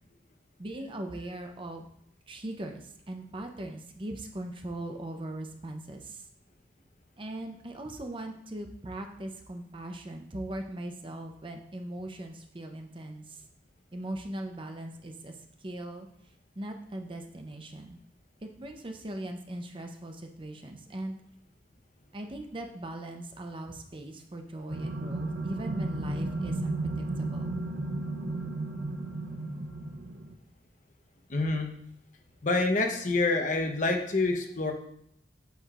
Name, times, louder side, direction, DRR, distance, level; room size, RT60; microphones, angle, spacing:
voice 1, 0.6-1.8 2.3-6.2 7.2-13.4 13.9-15.3 15.6-16.1 16.6-18.0 18.4-21.2 22.1-27.6, right 1 dB, 30° right, 4 dB, 0.7 m, -40 dB
sound 1, 24.7-30.3, right 2 dB, 80° right, 0.7 m, -34 dB
voice 2, 31.3-31.7 32.4-34.7, left 3 dB, 45° left, 3 dB, 0.9 m, -27 dB
8.0 x 6.5 x 2.5 m, 0.72 s
head